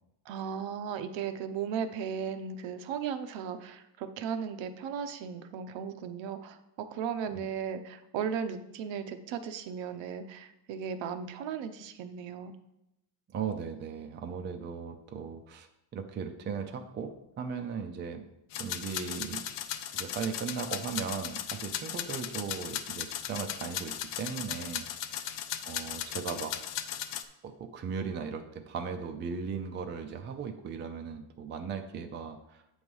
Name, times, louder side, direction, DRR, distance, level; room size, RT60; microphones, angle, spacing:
voice 1, 0.3-12.5, right 7 dB, 65° right, 9 dB, 0.7 m, -36 dB
voice 2, 13.3-15.7 15.9-18.2 18.6-19.4 19.9-25.3 25.7-26.6 27.4-32.6, right 6 dB, 25° right, 5 dB, 0.4 m, -37 dB
sound 1, 18.5-27.2, left 10 dB, 65° left, 0.6 m, -37 dB
7.8 x 3.2 x 5.3 m, 0.87 s
cardioid pair, 140°, 48 cm